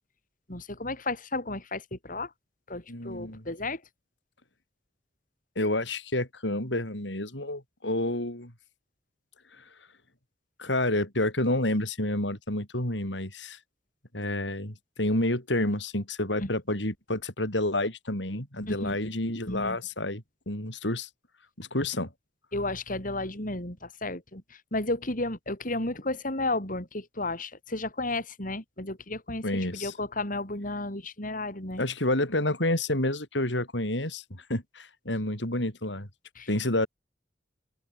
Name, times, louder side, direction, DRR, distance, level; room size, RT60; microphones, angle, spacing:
voice 1, 0.5-2.3 2.7-3.8 16.4-16.5 18.7-19.0 19.5-19.8 22.5-31.8 36.3-36.5, left 2 dB, 50° left, 6.8 m, -33 dB
voice 2, 2.9-3.4 5.6-8.5 9.6-9.7 10.6-13.6 14.1-21.1 21.6-22.1 29.4-29.9 31.8-36.1 36.5-36.9, left 1 dB, 85° left, 7.3 m, -29 dB
open air
head